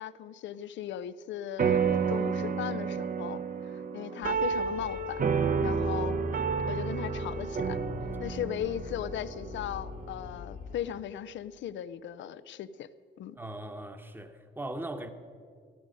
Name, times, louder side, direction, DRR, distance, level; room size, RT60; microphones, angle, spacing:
voice 1, 0.0-1.8 2.1-3.4 3.7-5.2 5.6-6.2 6.7-7.8 8.2-12.9 13.2-13.4, left 10 dB, 70° left, 0.6 m, -37 dB
sound 1, 1.6-10.3, right 5 dB, 45° right, 0.9 m, -30 dB
sound 2, 4.2-10.8, left 4 dB, 40° left, 1.3 m, -45 dB
voice 2, 13.3-15.1, right 1 dB, 10° right, 1.1 m, -39 dB
14.5 x 14.0 x 5.2 m
cardioid pair, 90°, 20 cm